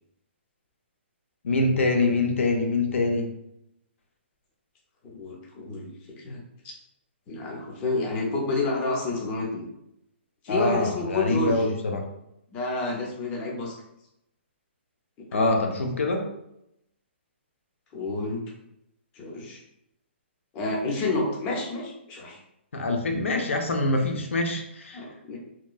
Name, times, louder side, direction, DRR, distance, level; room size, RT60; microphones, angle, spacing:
voice 1, 1.4-3.3 10.5-12.0 15.3-16.3 22.7-25.0, left 2 dB, 90° left, 4 dB, 0.5 m, -25 dB
voice 2, 5.0-6.7 7.3-9.7 10.4-11.6 12.5-13.7 15.3-15.5 17.9-18.4 19.1-19.6 20.5-22.4 24.9-25.4, left 2 dB, 15° left, -2 dB, 0.4 m, -29 dB
2.9 x 2.2 x 2.3 m, 0.81 s
hypercardioid pair, 165°, 7 cm